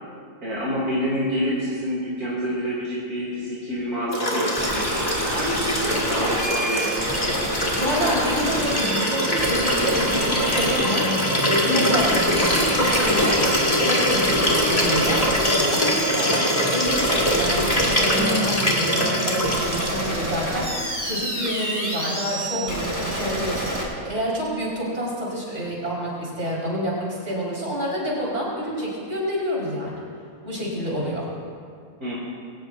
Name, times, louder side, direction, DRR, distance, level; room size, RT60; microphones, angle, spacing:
voice 1, 0.4-7.0 11.6-12.0 32.0-32.2, equal, 60° right, -7 dB, 3.5 m, -27 dB
Liquid, 4.1-20.2 21.4-21.5, equal, 20° left, 2.4 m, -23 dB
sound 1, 4.6-23.8, equal, 10° right, 3.2 m, -29 dB
voice 2, 7.8-12.2 12.6-13.4 13.7-20.7 21.0-30.0 30.4-31.3, equal, 45° right, -5 dB, 5.1 m, -28 dB
22.0 x 18.5 x 2.6 m, 2.2 s
omnidirectional pair, 1.7 m